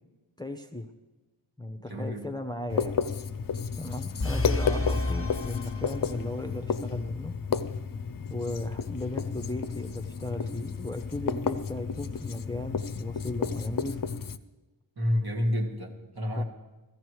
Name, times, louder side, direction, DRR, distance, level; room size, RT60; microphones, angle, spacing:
voice 1, 0.4-0.9 1.6-3.0 3.8-7.3 8.3-14.1 16.4-16.5, left 2 dB, 10° left, 5 dB, 0.7 m, -36 dB
voice 2, 1.9-2.3 4.2-4.3 15.0-16.4, left 1 dB, 50° right, 0 dB, 2.0 m, -29 dB
Writing, 2.7-14.4, left 6 dB, 45° left, 0.6 m, -32 dB
sound 1, 4.2-6.5, left 2 dB, 25° left, 1.3 m, -30 dB
15.0 x 14.0 x 3.2 m, 1.1 s
cardioid pair, 40°, 47 cm